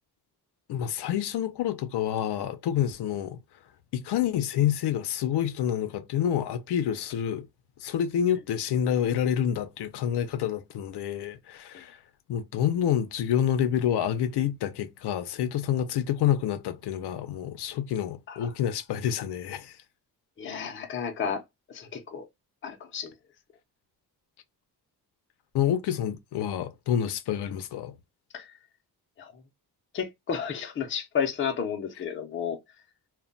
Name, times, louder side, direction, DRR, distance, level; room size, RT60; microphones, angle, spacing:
voice 1, 0.7-3.4 3.9-7.5 7.8-12.0 12.3-19.8 25.5-27.9, left 9 dB, 85° left, 0.6 m, -28 dB
voice 2, 20.4-21.4 21.7-22.3 22.6-23.1 28.3-28.5 29.2-29.4 29.9-32.6, left 7 dB, 30° left, 0.5 m, -32 dB
2.2 x 2.1 x 3.7 m
wide cardioid pair, 165°, 39 cm